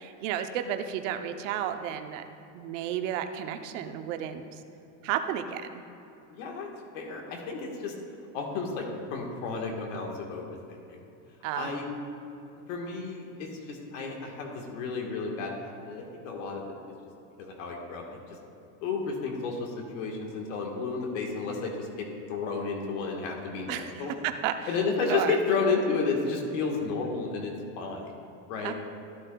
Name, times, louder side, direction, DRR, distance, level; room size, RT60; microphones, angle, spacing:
voice 1, 0.0-2.2 2.5-4.5 5.0-5.8 11.4-11.7 23.7-24.7 25.1-25.4 28.6-28.7, right 10 dB, 80° right, 8 dB, 0.7 m, -32 dB
voice 2, 6.3-6.7 6.9-7.9 8.3-8.8 9.1-11.0 11.6-11.9 12.7-16.7 17.4-18.2 18.8-24.1 24.7-28.0 28.5-28.7, left 4 dB, 85° left, 1 dB, 1.5 m, -32 dB
13.5 x 8.7 x 2.3 m, 2.8 s
supercardioid pair, 125°, 37 cm